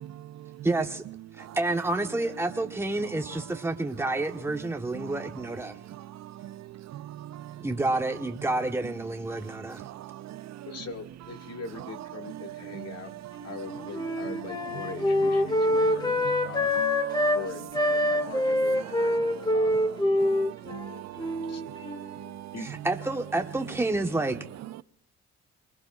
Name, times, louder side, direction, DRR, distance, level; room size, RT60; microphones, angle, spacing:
voice 1, 0.0-0.7 1.4-1.6 3.0-3.4 4.0-4.1 4.6-4.7 4.9-5.3 5.7-7.7 9.3-10.8 12.2-14.9 15.2-17.4 17.7-22.5, right 13 dB, 65° right, 0.6 m, -42 dB
voice 2, 0.6-1.0 1.4-5.8 7.6-9.8 22.8-24.4, right 2 dB, 10° right, 1.2 m, -29 dB
voice 3, 10.7-13.1 13.4-16.7 17.3-19.9 21.5-21.6 22.5-22.8, left 4 dB, 55° left, 1.9 m, -41 dB
Wind instrument woodwind instrument, 13.4-17.4 17.7-22.2, left 1 dB, 15° left, 1.8 m, -26 dB
28.0 x 20.0 x 2.4 m
cardioid pair, 90°, 30 cm